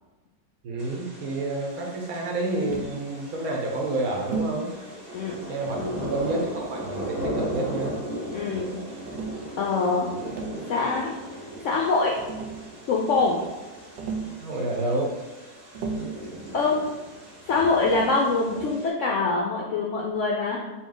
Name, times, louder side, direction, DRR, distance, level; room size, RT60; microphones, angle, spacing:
voice 1, 0.6-4.8 5.5-8.0 14.4-15.1, right 2 dB, 65° right, 0 dB, 1.2 m, -29 dB
thunder and birds, 0.8-18.9, equal, 30° right, 0.8 m, -38 dB
Tap, 2.7-3.0 4.3-4.6 5.7-6.2 7.3-8.1 9.1-9.4 10.1-10.6 11.8-11.9 12.1-12.7 14.0-14.4 15.7-16.2 17.8-18.2, right 5 dB, 90° right, 1.3 m, -34 dB
voice 2, 5.8-6.1 8.3-8.8 9.6-10.1 10.7-11.1 11.6-12.2 12.9-13.4 16.5-16.8 17.5-20.6, left 3 dB, 70° left, -2 dB, 0.7 m, -24 dB
4.2 x 3.0 x 3.9 m, 1.2 s
omnidirectional pair, 1.8 m